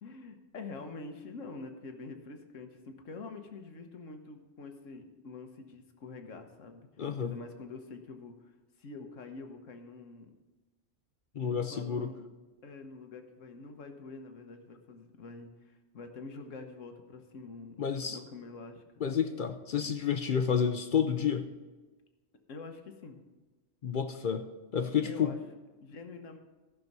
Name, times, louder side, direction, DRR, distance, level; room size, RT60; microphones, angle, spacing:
voice 1, 0.0-6.9 7.2-8.5 8.8-10.3 11.4-12.2 12.6-17.8 18.1-18.8 22.5-23.2 25.0-25.4 25.8-26.4, left 3 dB, 90° left, 6 dB, 1.4 m, -46 dB
voice 2, 7.0-7.3 11.4-12.1 17.8-18.2 19.0-21.5 23.8-24.5 24.7-25.4, left 7 dB, 55° left, 8 dB, 0.6 m, -30 dB
14.0 x 6.0 x 5.4 m, 1.2 s
omnidirectional pair, 1.3 m